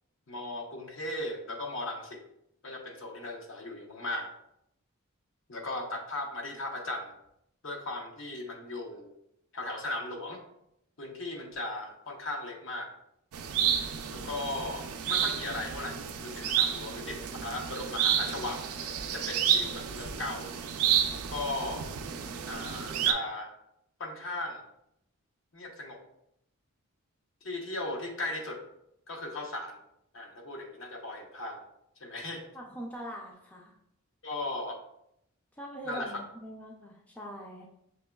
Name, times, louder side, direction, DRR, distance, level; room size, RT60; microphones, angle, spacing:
voice 1, 0.3-2.2 2.6-4.3 5.5-7.2 7.6-9.1 9.5-10.4 11.0-12.9 14.1-18.7 19.1-20.5 21.1-21.9 22.5-23.5 24.0-24.7 25.5-26.0 27.4-28.6 29.1-29.8 30.1-31.6 32.0-32.4 34.2-34.8 35.8-36.2, left 2 dB, 60° left, 2 dB, 0.7 m, -37 dB
sound 1, 13.3-23.1, right 9 dB, 85° right, 0.4 m, -31 dB
voice 2, 32.5-33.7 35.6-37.6, equal, 5° left, -2 dB, 0.4 m, -42 dB
6.2 x 2.9 x 2.2 m, 0.79 s
head